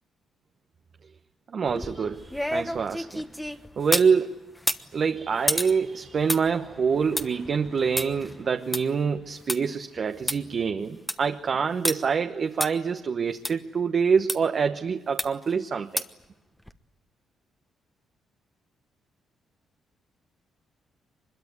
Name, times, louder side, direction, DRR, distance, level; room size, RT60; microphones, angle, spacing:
voice 1, 1.5-3.2 3.8-4.3 4.9-16.0, right 6 dB, 50° right, 6 dB, 1.0 m, -26 dB
sound 1, 1.7-4.1 4.6-9.6 10.0-10.1 10.3-10.4 10.8-11.3 11.8-12.0 12.6-12.7 13.4-13.5 14.3-14.4 15.2-15.5 16.0-16.2 16.7-16.8, equal, 5° left, 1.2 m, -31 dB
24.0 x 21.5 x 9.4 m, 1.0 s
cardioid pair, 90°, 0 cm